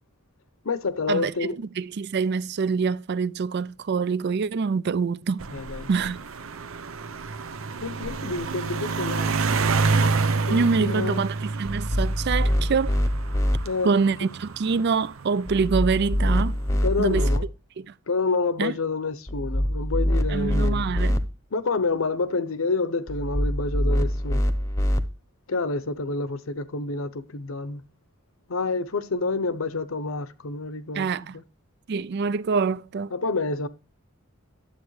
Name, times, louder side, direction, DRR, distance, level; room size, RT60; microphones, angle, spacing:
voice 1, 0.6-1.6 5.5-6.1 7.8-9.6 10.5-11.3 13.6-13.9 16.8-17.5 18.1-20.9 21.5-24.4 25.5-27.8 28.5-31.4 33.1-33.7, left 3 dB, 75° left, 0.8 m, -28 dB
voice 2, 1.8-5.4 5.9-6.2 10.5-13.0 13.8-16.6 17.0-17.3 17.8-17.9 18.6-18.7 20.3-21.2 30.9-31.4 31.9-33.1, right 5 dB, 55° right, 0.4 m, -25 dB
sound 1, 5.4-16.1 16.9-17.3, right 4 dB, 80° right, 0.7 m, -28 dB
sound 2, 11.6-13.6 15.5-17.4 19.3-21.2 23.1-25.0, equal, 15° left, 0.8 m, -24 dB
11.5 x 7.9 x 3.1 m
head